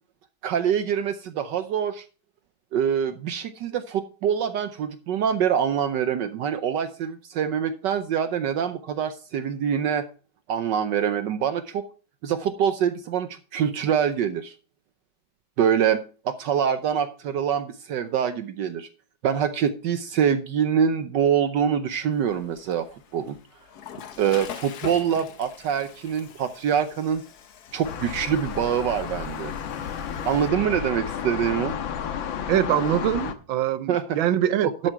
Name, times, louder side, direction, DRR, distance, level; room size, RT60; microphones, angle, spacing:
voice 1, 0.4-2.0 2.7-10.1 10.5-11.8 12.2-14.5 15.6-18.9 19.2-22.9 23.1-23.4 24.2-27.2 27.7-29.5 30.3-31.7 33.9-34.2 34.8-34.9, right 8 dB, 70° right, 1.3 m, -25 dB
Water / Toilet flush, 22.1-30.5, left 8 dB, 60° left, 1.4 m, -44 dB
sound 1, 27.8-33.3, left 8 dB, 80° left, 1.8 m, -32 dB
voice 2, 32.5-34.9, right 10 dB, 85° right, 1.5 m, -24 dB
12.0 x 7.7 x 4.5 m
omnidirectional pair, 2.1 m